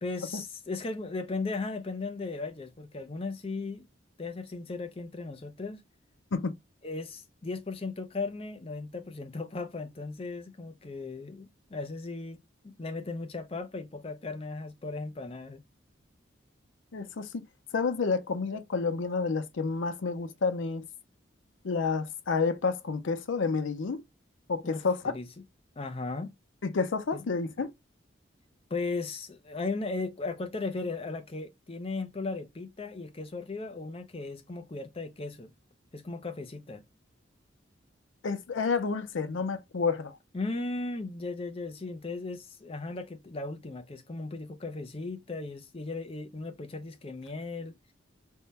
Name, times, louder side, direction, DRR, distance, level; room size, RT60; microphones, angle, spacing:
voice 1, 0.0-3.9 4.2-5.8 6.8-12.4 12.6-15.6 24.6-25.3 25.8-26.3 27.1-27.2 28.7-35.5 35.9-36.8 40.3-47.8, left 3 dB, 30° left, 0.5 m, -36 dB
voice 2, 16.9-17.4 17.7-20.9 21.6-24.0 24.5-25.1 26.6-27.7 38.2-40.2, left 4 dB, 90° left, 0.5 m, -29 dB
3.6 x 2.2 x 4.1 m
head